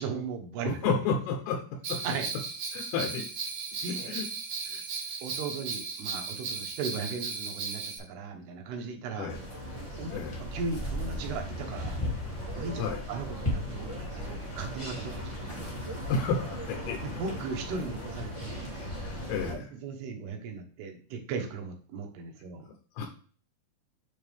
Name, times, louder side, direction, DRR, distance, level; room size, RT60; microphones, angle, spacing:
voice 1, 0.0-0.9 2.0-2.3 3.8-4.2 5.2-9.3 10.0-12.0 12.5-12.8 13.1-15.8 17.0-18.8 19.5-22.7, right 4 dB, 85° right, 3 dB, 3.2 m, -37 dB
voice 2, 0.6-1.6 1.9-2.0 2.7-3.2 4.1-4.2 4.7-4.8 9.2-9.4 10.1-10.4 12.8-13.0 16.1-17.0 18.8-19.7 23.0-23.1, left 5 dB, 85° left, 2 dB, 3.0 m, -31 dB
Bell, 1.8-8.0, right 4 dB, 60° right, 2.0 m, -36 dB
sound 1, 9.3-19.5, left 1 dB, 15° left, 1.0 m, -36 dB
8.7 x 3.7 x 3.4 m, 0.41 s
omnidirectional pair, 4.6 m